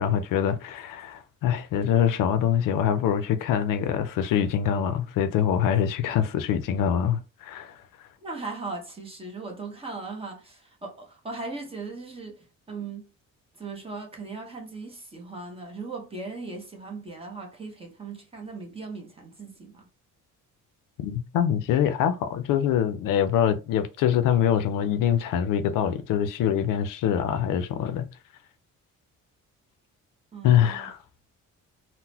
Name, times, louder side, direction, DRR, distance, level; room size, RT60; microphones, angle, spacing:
voice 1, 0.0-7.8 21.0-28.1 30.4-31.0, left 9 dB, 80° left, 0.5 m, -24 dB
voice 2, 8.2-13.1 13.5-19.9 30.3-30.9, right 3 dB, 20° right, 0.9 m, -38 dB
3.8 x 2.1 x 2.8 m
cardioid pair, 135°, 32 cm